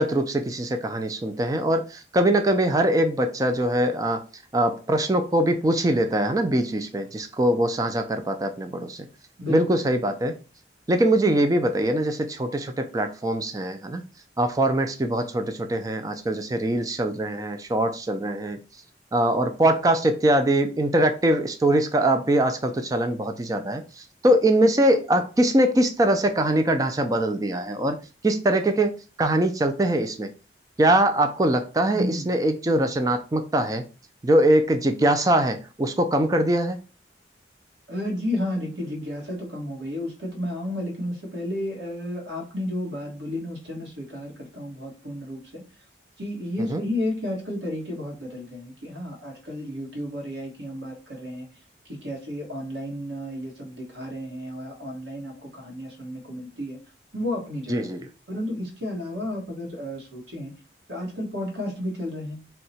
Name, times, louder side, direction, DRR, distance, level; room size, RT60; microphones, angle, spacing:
voice 1, 0.0-4.2 4.5-9.1 9.5-10.4 10.9-14.0 14.4-18.6 19.1-30.3 30.8-33.8 34.2-36.8 46.6-46.8 57.7-58.1, right 1 dB, 20° right, 0.3 m, -22 dB
voice 2, 31.9-32.3 37.9-45.6 46.2-51.5 51.8-56.8 57.1-57.8 58.3-60.5 60.9-62.4, left 1 dB, 90° right, 1.2 m, -32 dB
2.7 x 2.2 x 4.1 m
head